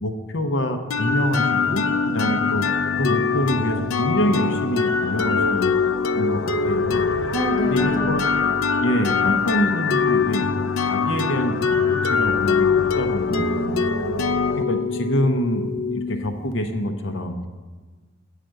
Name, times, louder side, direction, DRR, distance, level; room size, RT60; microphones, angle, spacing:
voice 1, 0.0-2.6 3.0-5.7 6.2-7.1 7.7-8.3 8.8-10.5 10.8-13.8 14.5-15.7 15.9-17.4, equal, 70° left, 6 dB, 0.8 m, -25 dB
sound 1, 0.9-16.5, left 5 dB, 90° left, 0.5 m, -23 dB
voice 2, 2.2-2.6 7.3-8.2 13.3-14.2, right 1 dB, ahead, 2 dB, 0.6 m, -29 dB
9.1 x 5.0 x 7.7 m, 1.3 s
head